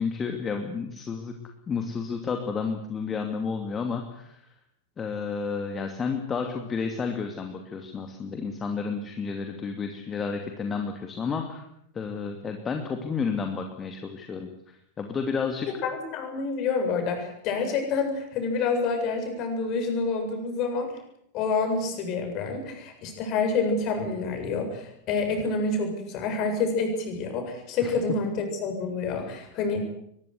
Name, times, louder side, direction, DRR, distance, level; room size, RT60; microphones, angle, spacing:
voice 1, 0.0-1.4 1.7-4.4 5.0-11.6 11.9-15.7 27.8-27.9, left 5 dB, 20° left, 5 dB, 2.6 m, -31 dB
voice 2, 15.7-20.9 21.3-29.8, left 4 dB, 40° left, 5 dB, 7.8 m, -28 dB
23.0 x 21.0 x 8.2 m, 0.73 s
figure-of-eight pair, 90°, 0 cm